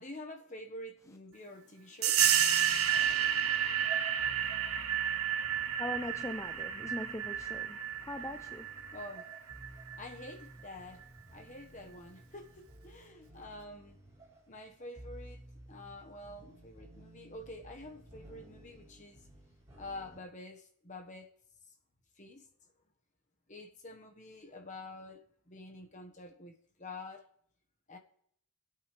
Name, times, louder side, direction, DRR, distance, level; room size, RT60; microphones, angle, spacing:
voice 1, 0.0-2.2 8.9-9.3 10.0-14.0 14.5-15.4 15.7-19.3 19.8-21.3 22.2-22.7 23.5-27.2 27.9-28.0, left 2 dB, 35° left, 1.4 m, -48 dB
sound 1, 2.0-10.3, right 9 dB, 80° right, 1.0 m, -31 dB
sound 2, 2.2-20.2, right 1 dB, 15° right, 6.5 m, -54 dB
voice 2, 5.8-8.7, left 1 dB, 15° left, 0.4 m, -41 dB
23.5 x 8.7 x 3.3 m
head